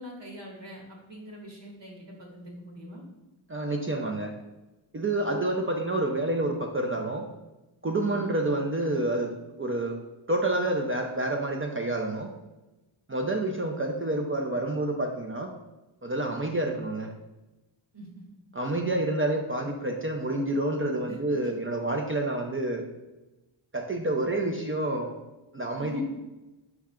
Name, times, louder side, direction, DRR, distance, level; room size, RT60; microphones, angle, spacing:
voice 1, 0.0-3.0 17.9-18.2 21.0-21.2 21.4-21.5 25.7-26.0, equal, 65° right, -1 dB, 1.6 m, -44 dB
voice 2, 3.5-4.3 4.9-7.3 7.8-10.0 10.3-12.3 13.1-15.5 16.0-17.1 18.5-22.8 23.7-25.1 25.5-26.0, right 2 dB, 30° right, 2 dB, 0.5 m, -28 dB
4.7 x 3.1 x 3.6 m, 1.0 s
cardioid pair, 55°, 47 cm